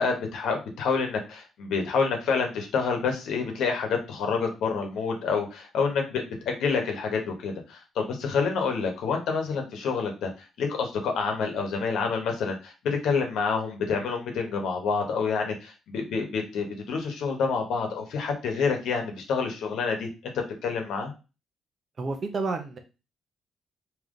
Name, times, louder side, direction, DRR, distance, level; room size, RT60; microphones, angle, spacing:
voice 1, 0.0-10.3 10.6-12.7 13.0-20.3 20.6-21.1, left 5 dB, 80° left, 3 dB, 1.0 m, -28 dB
voice 2, 22.0-22.8, right 3 dB, 45° right, 5 dB, 0.7 m, -30 dB
3.6 x 2.9 x 3.7 m, 0.30 s
cardioid pair, 90°, 0 cm